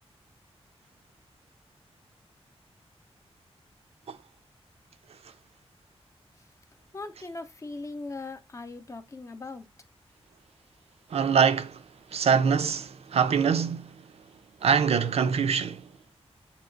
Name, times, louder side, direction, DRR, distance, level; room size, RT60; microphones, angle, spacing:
voice 1, 6.9-9.7, left 3 dB, 30° left, 0.5 m, -39 dB
voice 2, 11.1-11.8 12.1-14.0 14.6-15.9, right 6 dB, 75° right, 0.4 m, -24 dB
7.4 x 2.8 x 2.5 m
wide cardioid pair, 165°, 11 cm